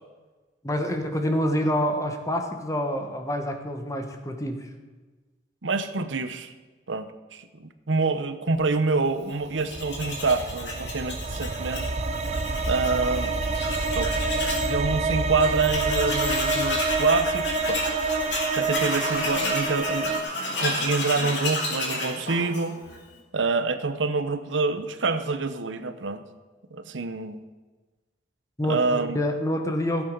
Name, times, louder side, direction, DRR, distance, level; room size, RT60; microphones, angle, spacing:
voice 1, 0.6-4.7 28.6-30.0, equal, 15° left, 5 dB, 1.2 m, -27 dB
voice 2, 5.6-6.5 6.9-11.9 12.7-13.4 14.0-17.8 18.5-20.3 20.6-22.8 23.3-26.2 26.7-27.4 28.6-29.2, right 4 dB, 85° right, 10 dB, 0.9 m, -27 dB
sound 1, 9.5-20.2, right 3 dB, 35° right, 0.7 m, -28 dB
Tools, 9.6-14.7 15.1-15.2 15.4-23.0, left 2 dB, 70° left, 2.7 m, -31 dB
15.0 x 8.2 x 5.4 m, 1.3 s
head